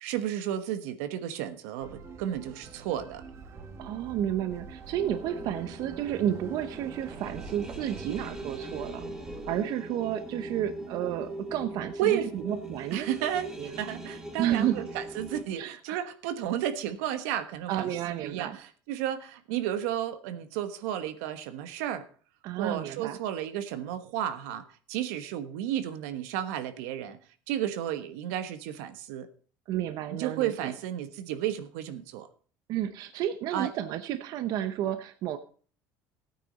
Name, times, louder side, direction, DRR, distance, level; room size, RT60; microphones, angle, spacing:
voice 1, 0.0-3.2 12.0-12.3 12.9-13.5 13.8-22.0 22.6-27.2 27.5-29.3 30.1-32.3 33.5-33.7, right 11 dB, 85° right, 10 dB, 1.3 m, -32 dB
sound 1, 1.8-9.6, right 4 dB, 35° right, 1.7 m, -45 dB
voice 2, 3.8-9.0 9.5-13.1 13.6-13.8 14.4-14.8 15.6-16.1 17.7-18.6 22.4-23.2 29.7-30.7 32.7-35.4, right 11 dB, 55° right, 10 dB, 0.8 m, -31 dB
sound 2, 5.0-15.4, right 2 dB, 10° right, 2.4 m, -41 dB
15.5 x 9.4 x 4.1 m, 0.43 s
cardioid pair, 135°, 8 cm